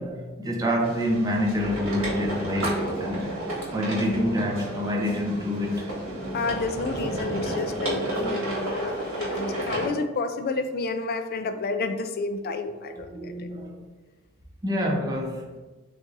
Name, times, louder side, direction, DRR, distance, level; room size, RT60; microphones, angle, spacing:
voice 1, 0.0-5.9 8.2-8.4 12.9-13.8 14.6-15.5, equal, 20° right, 0.7 m, -27 dB
sound 1, 0.8-9.9, right 1 dB, 80° right, 1.5 m, -32 dB
voice 2, 6.3-13.5, left 3 dB, 45° left, 0.4 m, -30 dB
7.3 x 2.7 x 2.6 m
head